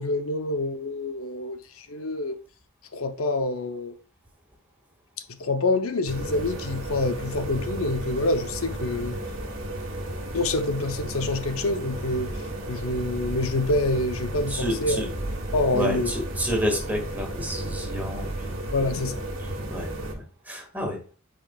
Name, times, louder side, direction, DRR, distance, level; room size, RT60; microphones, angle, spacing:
voice 1, 0.0-1.6 1.9-2.4 2.9-4.0 5.4-9.2 10.3-12.3 12.7-15.0 15.5-16.1 18.7-19.2, left 2 dB, 75° left, 0.7 m, -26 dB
sound 1, 6.1-20.1, right 1 dB, 70° right, 1.5 m, -33 dB
voice 2, 14.5-15.1 15.7-18.6 19.4-21.0, equal, 10° right, 1.8 m, -30 dB
8.8 x 5.1 x 2.3 m
head